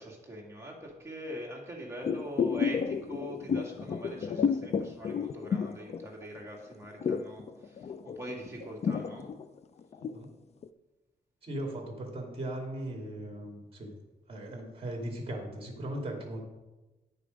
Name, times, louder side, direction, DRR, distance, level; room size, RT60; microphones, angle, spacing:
voice 1, 0.0-9.3, right 1 dB, 15° right, -2 dB, 2.1 m, -43 dB
sound 1, 2.0-6.5 6.7-10.2 10.6-10.7, left 6 dB, 40° left, 0.4 m, -31 dB
voice 2, 11.4-13.9 14.3-16.4, right 1 dB, 35° right, 1 dB, 2.3 m, -38 dB
10.0 x 6.7 x 5.2 m, 1.1 s
wide cardioid pair, 150°, 17 cm